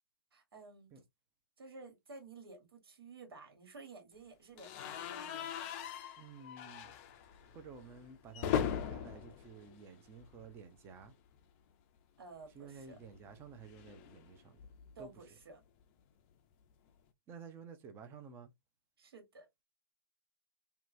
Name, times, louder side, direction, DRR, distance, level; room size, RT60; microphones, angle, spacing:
voice 1, 0.3-0.9 1.6-5.6 12.2-13.0 14.9-15.6 19.0-19.5, right 3 dB, 75° right, 1.5 m, -53 dB
sound 1, 4.6-10.6 10.9-11.1 11.4-11.5 12.7-15.1, left 9 dB, 30° left, 0.5 m, -41 dB
voice 2, 6.2-6.9 7.5-11.1 12.5-14.6 15.0-15.1 17.3-18.5, right 5 dB, 20° right, 0.6 m, -52 dB
2.9 x 2.2 x 2.5 m
hypercardioid pair, 135°, 12 cm